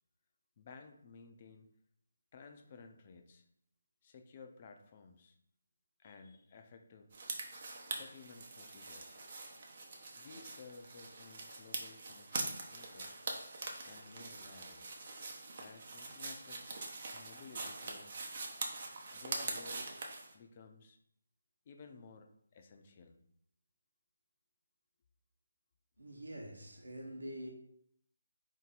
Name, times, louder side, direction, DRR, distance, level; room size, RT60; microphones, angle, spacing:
voice 1, 0.6-1.7 2.3-3.4 4.0-5.4 6.0-7.1 7.9-9.2 10.2-13.1 13.8-14.9 15.6-16.7 17.1-18.2 19.1-19.9 20.3-21.0 21.7-23.2, left 4 dB, 35° left, 0.5 m, -55 dB
sound 1, 7.1-20.3, right 3 dB, 45° right, 0.9 m, -44 dB
voice 2, 26.0-27.5, equal, 85° right, 1.1 m, -45 dB
4.3 x 2.9 x 4.0 m
figure-of-eight pair, 160°, 0 cm